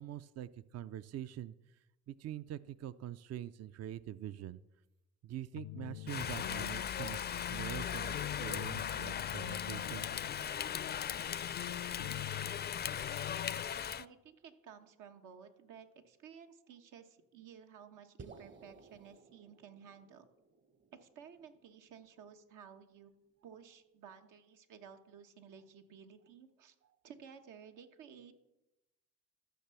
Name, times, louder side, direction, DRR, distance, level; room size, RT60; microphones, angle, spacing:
voice 1, 0.0-1.8 2.1-4.6 5.2-10.1 26.8-26.9, right 12 dB, 55° right, 15 dB, 0.5 m, -44 dB
sound 1, 5.5-13.7, left 15 dB, 80° left, 0.6 m, -46 dB
Rain, 6.1-14.0, left 8 dB, 35° left, 0.4 m, -38 dB
voice 2, 14.0-20.2 20.9-23.1 23.4-26.7 27.0-28.3, right 7 dB, 85° right, 6 dB, 1.3 m, -55 dB
sound 2, 18.2-22.6, right 4 dB, 40° right, 0.9 m, -58 dB
13.5 x 6.7 x 6.9 m, 0.96 s
cardioid pair, 90°, 30 cm